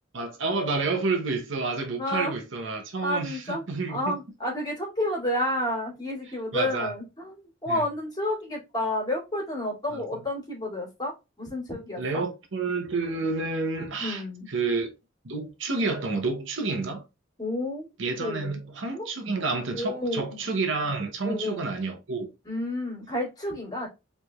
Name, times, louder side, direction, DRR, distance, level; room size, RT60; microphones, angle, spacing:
voice 1, 0.1-4.2 6.5-6.9 7.7-7.8 9.9-10.2 12.0-14.2 14.5-14.9 15.2-17.0 18.0-22.3, right 3 dB, 65° right, 0.8 m, -29 dB
voice 2, 2.0-2.3 3.0-7.4 7.6-12.2 14.0-14.5 17.4-17.9 18.2-18.6 18.9-19.1 19.7-20.4 21.2-21.7 22.4-23.9, left 1 dB, 20° left, 2.3 m, -30 dB
4.8 x 3.3 x 2.3 m
head